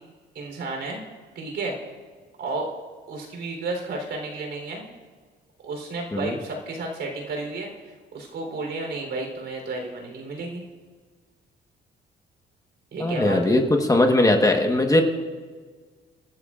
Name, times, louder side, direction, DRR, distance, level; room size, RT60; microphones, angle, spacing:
voice 1, 0.3-1.0 1.4-1.8 2.4-2.7 3.1-4.8 5.6-7.7 8.1-10.6 12.9-13.6, right 3 dB, 65° right, 2 dB, 3.8 m, -32 dB
voice 2, 13.0-15.0, left 1 dB, 15° left, 4 dB, 1.3 m, -20 dB
25.0 x 12.5 x 2.5 m, 1.5 s
cardioid pair, 90°, 20 cm